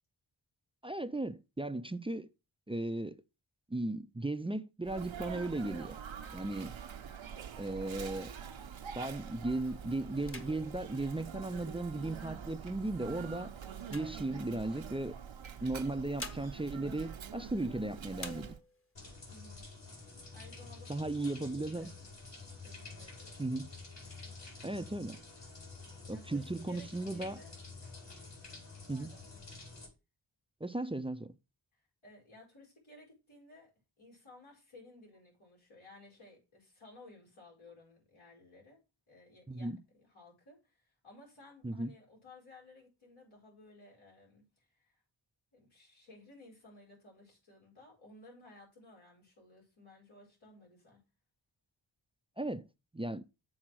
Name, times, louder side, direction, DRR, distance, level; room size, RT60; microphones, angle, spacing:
voice 1, 0.8-2.3 2.7-3.2 3.7-5.9 6.3-6.7 7.6-8.3 8.9-13.5 13.9-15.2 15.6-18.5 20.9-21.9 23.4-23.7 24.6-25.2 26.1-27.4 28.9-29.1 30.6-31.3 39.5-39.8 41.6-41.9 52.4-52.7 52.9-53.2, right 2 dB, 10° right, 0.5 m, -36 dB
Sneeze, 4.8-18.6, right 7 dB, 80° right, 0.9 m, -45 dB
sound 1, 7.9-9.1 9.6-9.8 10.1-12.1 12.7-14.9 15.8-17.8 18.1-19.0 19.4-19.5 19.8-20.5 20.9-21.8, left 2 dB, 30° left, 1.2 m, -51 dB
sound 2, 18.9-29.9, left 3 dB, 65° left, 4.4 m, -49 dB
voice 2, 19.3-19.7 20.3-21.9 22.6-23.6 26.1-27.5 28.9-29.2 31.7-33.7 34.0-38.8 39.1-39.7 40.0-45.0 45.5-51.0, left 2 dB, 85° left, 5.0 m, -57 dB
7.6 x 4.0 x 6.2 m
cardioid pair, 60°, 46 cm